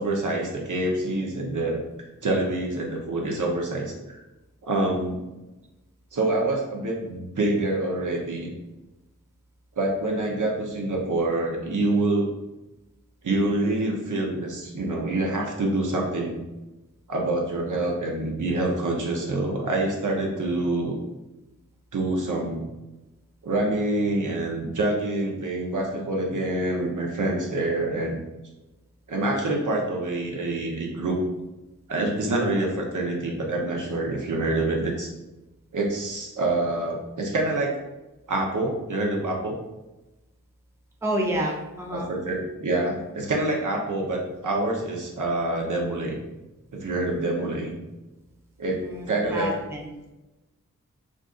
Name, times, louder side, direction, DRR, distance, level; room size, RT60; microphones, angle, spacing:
voice 1, 0.0-1.8 2.2-4.2 4.6-5.2 6.1-8.5 9.8-12.3 13.2-16.4 17.1-21.0 21.9-22.6 23.4-28.2 29.1-31.2 31.9-35.1 35.7-37.7 38.3-39.5 41.9-46.2 46.7-47.7 48.6-48.8 49.1-49.5, right 2 dB, 70° right, -1 dB, 0.7 m, -26 dB
voice 2, 41.0-42.1 48.8-49.1 49.3-49.9, right 1 dB, 10° right, -1 dB, 0.5 m, -28 dB
2.5 x 2.4 x 3.6 m, 1.0 s
wide cardioid pair, 110°, 32 cm